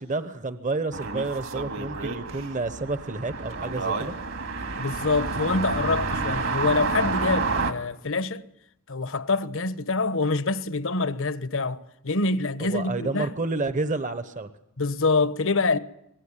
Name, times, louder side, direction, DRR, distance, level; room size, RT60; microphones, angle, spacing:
voice 1, 0.0-4.2 12.6-14.5, right 3 dB, 35° right, 1.1 m, -30 dB
sound 1, 0.9-7.7, right 4 dB, 65° right, 2.3 m, -29 dB
voice 2, 4.8-8.4 8.9-13.3 14.8-15.8, left 3 dB, 60° left, 1.2 m, -26 dB
24.0 x 20.5 x 9.9 m
head